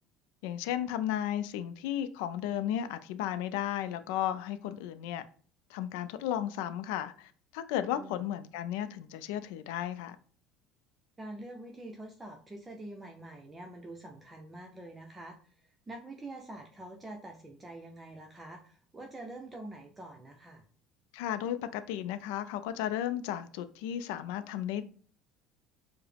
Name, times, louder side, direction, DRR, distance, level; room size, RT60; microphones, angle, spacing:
voice 1, 0.4-5.2 5.7-10.2 21.1-24.8, left 11 dB, 85° left, 0.3 m, -34 dB
voice 2, 7.9-8.2 11.2-20.6, right 1 dB, 20° right, 0.6 m, -46 dB
4.6 x 2.0 x 3.3 m
supercardioid pair, 105°, 0 cm